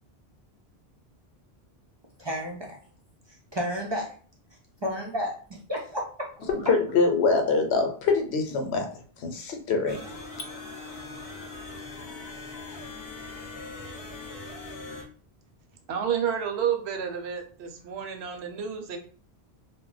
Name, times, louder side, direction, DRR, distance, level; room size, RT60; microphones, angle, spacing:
voice 1, 2.2-2.8 3.3-4.1 4.8-6.3, equal, 45° right, -2 dB, 0.3 m, -32 dB
voice 2, 6.5-8.9 9.2-10.0, left 4 dB, 80° left, 4 dB, 0.9 m, -24 dB
sound 1, 9.9-15.0, left 3 dB, 20° left, 0.9 m, -40 dB
voice 3, 15.9-19.0, right 8 dB, 80° right, 4 dB, 0.8 m, -30 dB
2.3 x 2.0 x 3.8 m, 0.43 s
omnidirectional pair, 1.1 m